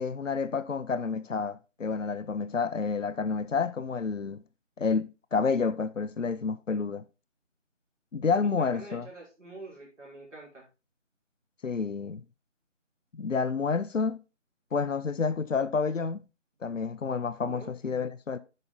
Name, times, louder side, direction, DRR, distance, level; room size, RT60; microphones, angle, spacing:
voice 1, 0.0-4.4 4.8-7.0 8.1-9.1 11.6-12.2 13.1-14.2 14.7-16.2 16.6-18.4, left 5 dB, 80° left, 0.8 m, -29 dB
voice 2, 8.8-10.6 17.4-17.7, right 2 dB, 70° right, 5.2 m, -46 dB
10.5 x 5.5 x 3.9 m
figure-of-eight pair, 175°, 37 cm